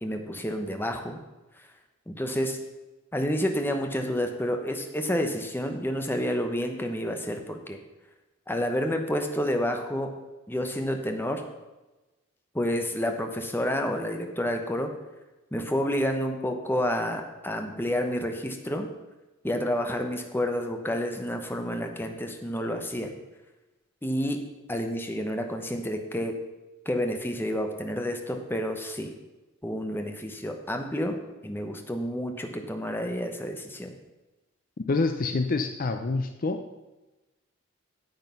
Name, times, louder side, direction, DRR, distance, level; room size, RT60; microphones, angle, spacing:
voice 1, 0.0-1.2 2.1-2.6 3.1-7.8 8.5-10.1 10.5-11.4 12.5-14.9 15.5-18.9 19.4-23.1 24.0-24.4 24.7-26.4 26.9-29.1 29.6-33.9, equal, 10° left, 5 dB, 1.0 m, -29 dB
voice 2, 34.9-36.6, left 3 dB, 40° left, 7 dB, 0.5 m, -26 dB
9.3 x 7.7 x 5.7 m, 1.1 s
head